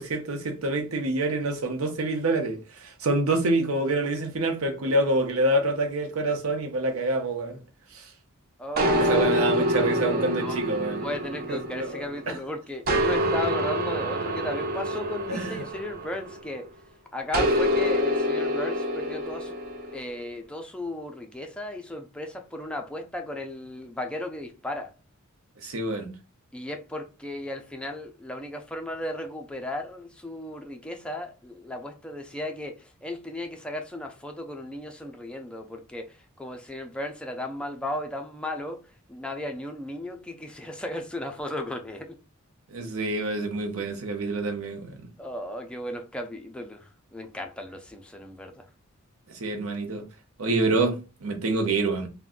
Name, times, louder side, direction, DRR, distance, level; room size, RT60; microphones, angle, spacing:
voice 1, 0.0-7.6 7.9-8.1 9.0-11.0 11.5-12.4 15.3-15.6 25.6-26.1 42.7-45.1 49.3-50.0 50.4-52.1, right 2 dB, 75° right, 0.7 m, -27 dB
voice 2, 8.6-10.6 11.0-16.7 17.1-19.5 19.9-24.9 26.5-32.7 33.0-36.1 36.4-38.8 39.1-42.1 45.2-46.8 47.1-48.5, left 1 dB, 5° left, 0.4 m, -35 dB
sound 1, 8.8-12.3 12.9-16.6 17.3-20.0, equal, 45° right, 0.6 m, -26 dB
2.5 x 2.2 x 3.7 m
head